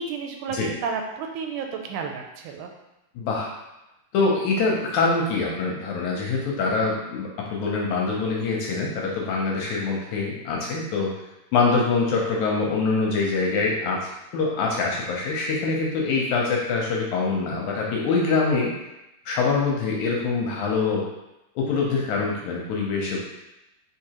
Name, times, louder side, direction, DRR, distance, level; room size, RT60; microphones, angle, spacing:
voice 1, 0.0-2.7, right 5 dB, 80° right, 3 dB, 2.0 m, -31 dB
voice 2, 3.2-3.5 4.1-11.1 11.5-18.7 19.3-21.0 21.6-23.2, left 4 dB, 75° left, -2 dB, 1.8 m, -24 dB
4.6 x 3.8 x 2.8 m, 0.92 s
omnidirectional pair, 3.8 m